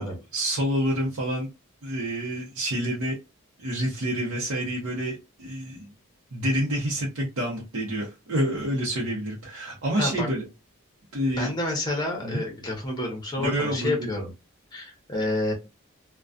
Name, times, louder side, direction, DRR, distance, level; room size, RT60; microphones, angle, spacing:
voice 1, 0.0-1.5 1.8-3.2 3.6-5.9 6.3-10.4 11.1-11.5 12.2-12.4 13.4-14.1, equal, 75° right, -4 dB, 0.7 m, -28 dB
voice 2, 10.0-10.3 11.3-14.3 14.7-15.5, left 1 dB, 20° left, 1 dB, 0.8 m, -29 dB
2.3 x 2.2 x 2.4 m, 0.26 s
head